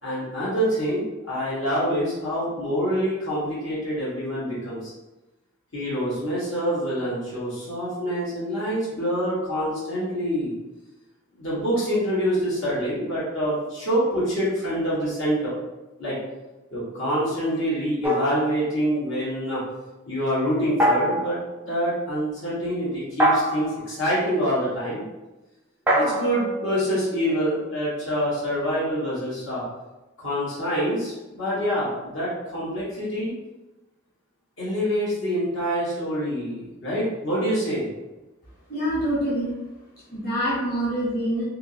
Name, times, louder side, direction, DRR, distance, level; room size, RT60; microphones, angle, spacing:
voice 1, 0.0-4.9 5.7-10.5 11.3-15.5 16.0-16.1 16.7-19.6 20.1-21.4 21.6-25.0 25.9-29.6 30.2-33.3 34.6-37.9, equal, 65° left, -9 dB, 1.3 m, -26 dB
sound 1, 18.0-19.1 20.8-21.4 23.2-23.8 25.9-27.6, equal, 10° right, 0.4 m, -24 dB
voice 2, 38.7-39.5 40.1-41.4, equal, 45° left, -9 dB, 1.4 m, -25 dB
3.5 x 2.9 x 2.7 m, 1.1 s
head